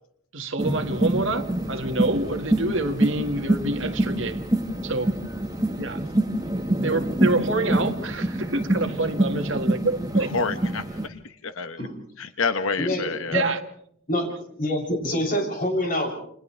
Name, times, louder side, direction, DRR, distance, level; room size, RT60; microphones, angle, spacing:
voice 1, 0.3-4.4 4.8-5.1 5.8-6.0 6.8-10.4 13.3-13.6, right 2 dB, 65° right, 6 dB, 1.8 m, -27 dB
sound 1, 0.6-11.1, right 1 dB, 20° right, 1.5 m, -26 dB
voice 2, 10.3-11.8 12.2-13.5, left 4 dB, 80° left, 9 dB, 1.0 m, -28 dB
voice 3, 12.8-13.5 14.1-14.3 14.6-16.1, left 1 dB, 40° left, 0 dB, 7.4 m, -26 dB
29.5 x 28.5 x 3.4 m, 0.68 s
head